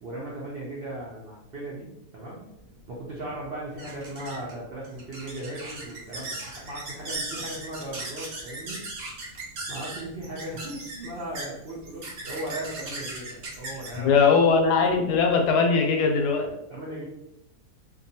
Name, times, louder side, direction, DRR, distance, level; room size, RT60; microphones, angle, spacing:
voice 1, 0.0-2.5 2.9-8.8 9.7-14.2 16.7-17.0, right 1 dB, 80° right, -4 dB, 0.5 m, -37 dB
sound 1, 2.6-15.5, right 2 dB, 60° right, 1.0 m, -39 dB
voice 2, 14.0-16.5, left 5 dB, 90° left, 3 dB, 1.1 m, -20 dB
2.7 x 2.2 x 2.7 m, 0.87 s
omnidirectional pair, 1.7 m